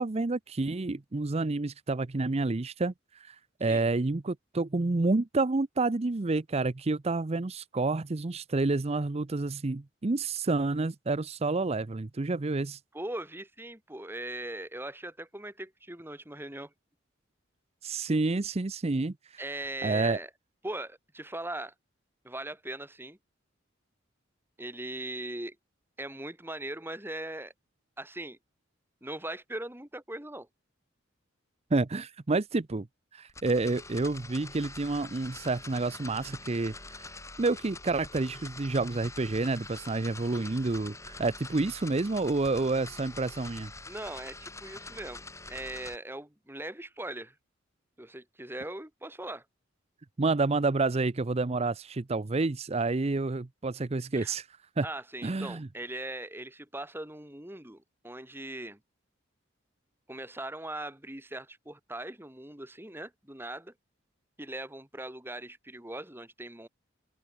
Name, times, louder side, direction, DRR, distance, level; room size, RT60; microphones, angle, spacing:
voice 1, 0.0-12.8 17.8-19.1 19.5-20.2 31.7-32.9 33.1-36.7 37.4-43.7 50.2-54.5 54.8-54.9 55.2-55.7, right 3 dB, 30° right, 0.6 m, -29 dB
voice 2, 12.9-16.7 19.4-20.3 20.6-21.7 22.2-23.2 24.6-25.5 26.0-27.5 28.0-28.4 29.0-30.5 43.9-45.2 45.5-47.3 48.0-49.4 54.1-54.3 54.8-58.8 60.1-63.7 64.4-66.7, right 1 dB, 10° right, 3.4 m, -40 dB
sound 1, 33.3-46.0, left 3 dB, 15° left, 4.9 m, -45 dB
open air
head